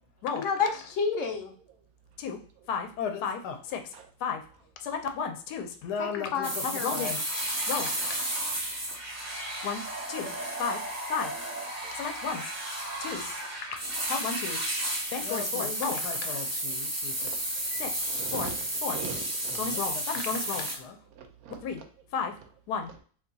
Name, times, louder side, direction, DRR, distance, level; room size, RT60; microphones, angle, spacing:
voice 1, 0.4-1.5 6.0-7.0, left 5 dB, 65° left, 0.8 m, -30 dB
voice 2, 2.7-3.9 4.2-4.4 4.8-8.3 9.6-9.8 10.1-10.3 10.6-10.8 11.1-11.3 11.9-12.5 13.0-13.3 14.1-14.6 15.1-17.3 17.7-18.0 18.3-18.5 18.8-19.0 19.6-21.0 21.6-21.8 22.1-22.3 22.7-22.9, left 6 dB, 80° left, 1.1 m, -33 dB
sound 1, 6.4-20.7, right 1 dB, 20° right, 0.4 m, -33 dB
voice 3, 17.7-18.6 18.9-19.6 21.2-21.6, right 6 dB, 70° right, 1.0 m, -41 dB
2.8 x 2.3 x 3.8 m
omnidirectional pair, 1.7 m